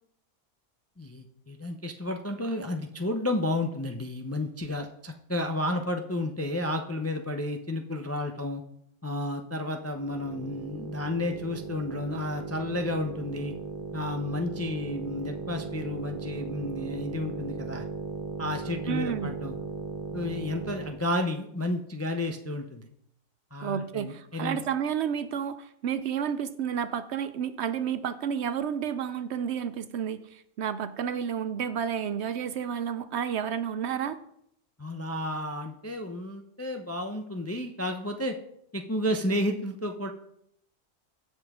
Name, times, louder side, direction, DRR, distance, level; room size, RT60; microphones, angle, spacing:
voice 1, 1.0-8.6 9.0-13.5 13.9-17.8 18.4-19.6 20.1-22.9 23.5-24.6 34.8-38.4 38.7-40.1, left 1 dB, 20° left, 5 dB, 0.4 m, -32 dB
sound 1, 10.0-21.1, right 4 dB, 45° right, 1.1 m, -37 dB
voice 2, 18.9-19.3 23.6-34.2, right 8 dB, 65° right, 13 dB, 0.8 m, -31 dB
16.5 x 5.5 x 3.6 m, 0.73 s
omnidirectional pair, 1.3 m